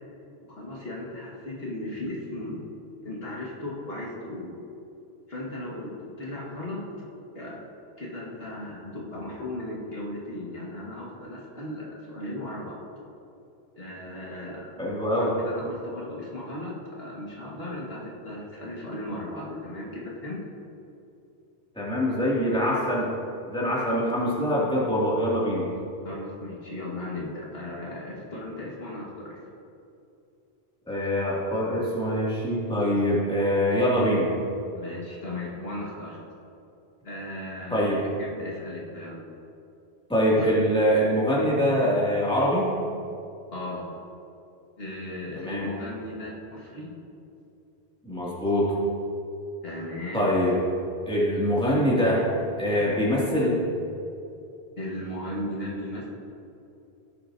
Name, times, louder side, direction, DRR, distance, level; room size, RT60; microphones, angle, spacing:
voice 1, 0.5-2.6 3.0-4.6 5.3-6.8 7.3-7.7 8.0-12.8 13.8-14.7 15.2-20.4 26.0-29.4 34.7-36.2 37.0-39.2 40.4-40.5 43.5-43.9 44.8-46.9 49.6-50.3 54.8-56.1, left 1 dB, 65° left, -5 dB, 1.9 m, -36 dB
voice 2, 14.8-15.4 21.8-23.2 23.5-25.7 30.9-34.3 37.7-38.0 40.1-42.7 45.4-45.7 48.0-48.8 50.1-50.6 51.1-52.3 52.6-53.6, equal, 5° left, -7 dB, 2.3 m, -24 dB
16.0 x 8.3 x 2.7 m, 2.7 s
omnidirectional pair, 1.1 m